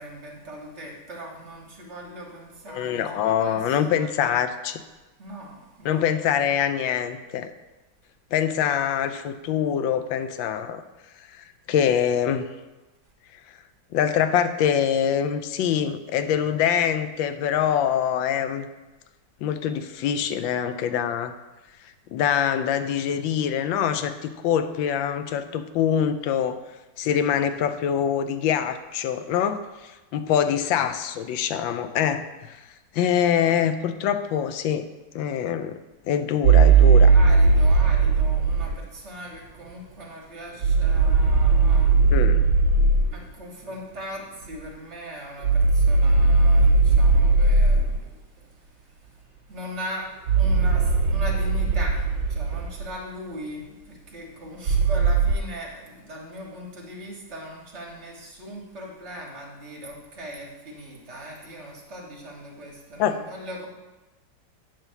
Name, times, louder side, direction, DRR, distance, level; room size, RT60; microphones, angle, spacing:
voice 1, 0.0-4.4 5.2-6.0 37.1-41.9 43.1-48.0 49.5-50.1 50.4-63.7, equal, 40° right, -2 dB, 1.6 m, -39 dB
voice 2, 2.7-4.8 5.8-7.5 8.3-10.8 11.4-12.5 13.9-18.7 19.4-21.3 22.1-26.6 27.0-32.6 32.9-34.9 35.1-35.8 36.1-37.1 42.1-42.4 63.0-63.2, left 9 dB, 85° left, 10 dB, 1.3 m, -24 dB
sound 1, 36.4-38.8 40.6-43.1 45.4-48.0 50.3-52.9 54.7-55.3, right 4 dB, 80° right, 1.6 m, -18 dB
8.9 x 3.4 x 6.8 m, 1.1 s
omnidirectional pair, 2.0 m